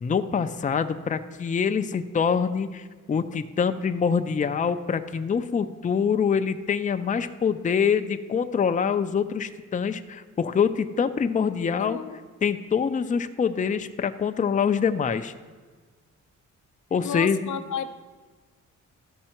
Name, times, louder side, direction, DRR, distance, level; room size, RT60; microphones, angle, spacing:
voice 1, 0.0-12.0 12.4-15.3 16.9-17.5, left 6 dB, 25° left, 9 dB, 0.4 m, -25 dB
voice 2, 11.6-12.2 17.0-17.9, left 8 dB, 75° left, 9 dB, 0.6 m, -33 dB
13.0 x 5.5 x 4.4 m, 1.4 s
cardioid pair, 95°, 30 cm